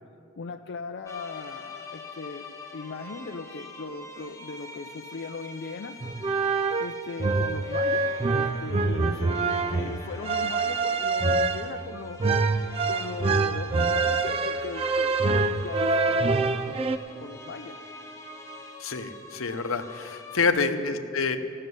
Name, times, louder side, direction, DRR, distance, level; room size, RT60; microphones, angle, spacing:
voice 1, 0.4-6.0 6.8-12.2 12.9-15.3 15.6-16.9 17.2-17.8 20.7-21.0, left 4 dB, 55° left, 5 dB, 0.5 m, -38 dB
sound 1, 1.1-20.5, left 2 dB, 15° left, 1.0 m, -44 dB
sound 2, 6.0-17.0, right 3 dB, 30° right, 0.4 m, -25 dB
voice 2, 18.8-21.4, left 4 dB, 85° left, 8 dB, 0.8 m, -27 dB
16.0 x 6.6 x 9.4 m, 2.4 s
head